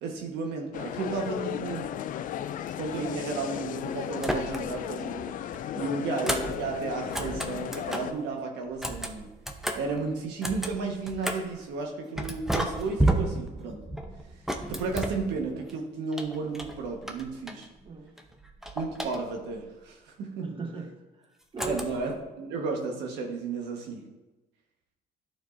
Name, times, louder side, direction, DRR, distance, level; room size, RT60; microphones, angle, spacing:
voice 1, 0.0-1.9 2.8-5.2 5.7-9.3 9.7-13.8 14.7-17.7 18.7-20.5 21.7-24.1, right 4 dB, 85° right, 1 dB, 1.4 m, -33 dB
sound 1, 0.7-8.1, left 10 dB, 55° left, 0.4 m, -35 dB
sound 2, 4.2-4.9 5.2-8.2 8.7-11.6 12.2-15.7 16.1-17.9 18.2-19.6 21.6-22.2, right 1 dB, ahead, 0.7 m, -33 dB
voice 2, 17.8-18.2 20.4-21.9, right 3 dB, 30° right, 2 dB, 1.1 m, -39 dB
12.5 x 4.5 x 2.6 m, 1.1 s
cardioid pair, 110°, 17 cm